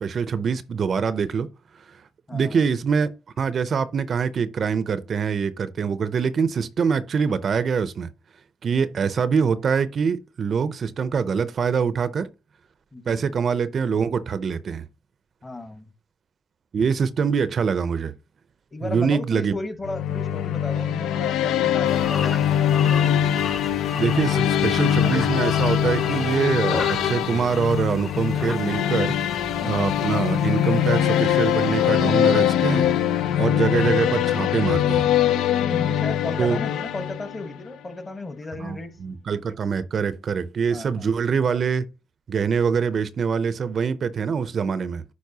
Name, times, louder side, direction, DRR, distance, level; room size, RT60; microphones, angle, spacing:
voice 1, 0.0-1.5 1.9-2.0 2.3-3.1 3.4-8.1 8.6-12.3 13.1-14.9 16.7-18.1 18.8-19.6 23.9-32.9 33.4-35.5 36.4-36.6 38.6-41.9 42.3-45.0, right 6 dB, 50° right, 0.5 m, -24 dB
voice 2, 2.3-2.6 12.9-13.4 15.4-15.9 18.7-23.1 29.6-29.9 35.6-38.9 40.7-41.1, left 2 dB, 25° left, 1.2 m, -34 dB
sound 1, 19.8-37.6, left 10 dB, 85° left, 0.5 m, -22 dB
sound 2, 21.8-34.2, left 3 dB, 40° left, 3.2 m, -35 dB
9.4 x 4.2 x 2.8 m
cardioid pair, 90°, 0 cm